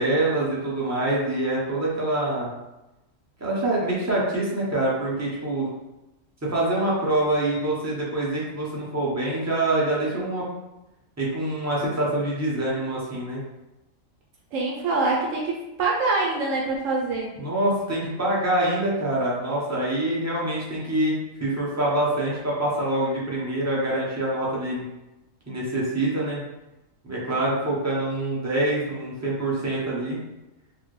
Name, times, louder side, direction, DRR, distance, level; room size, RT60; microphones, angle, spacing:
voice 1, 0.0-2.5 3.4-5.7 6.4-10.5 11.2-13.4 17.4-24.8 25.5-26.4 27.0-30.2, right 1 dB, 15° right, -6 dB, 0.8 m, -25 dB
voice 2, 14.5-17.3, right 3 dB, 80° right, -1 dB, 0.9 m, -25 dB
4.3 x 2.0 x 3.1 m, 0.96 s
omnidirectional pair, 1.3 m